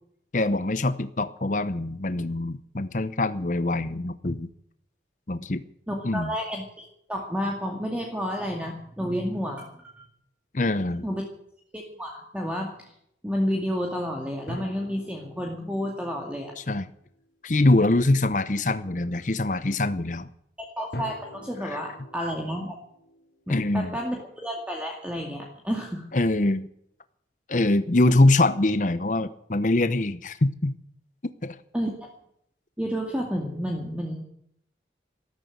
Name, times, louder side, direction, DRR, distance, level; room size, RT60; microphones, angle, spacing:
voice 1, 0.3-4.5 5.3-5.6 6.0-6.3 10.5-11.0 16.7-16.9 17.4-20.3 21.6-21.8 23.5-23.9 26.1-26.7 27.5-30.7 31.4-31.6, left 2 dB, 45° left, 12 dB, 0.8 m, -23 dB
voice 2, 5.9-9.7 10.0-10.1 11.0-11.2 11.7-12.9 13.2-16.5 20.6-22.7 23.5-26.1 28.0-28.1 31.7-31.9 32.8-34.2, equal, 5° right, 0 dB, 2.2 m, -30 dB
sound 1, 14.5-17.3 20.9-24.3, left 1 dB, 60° left, 4.0 m, -43 dB
13.5 x 13.5 x 7.9 m, 0.71 s
head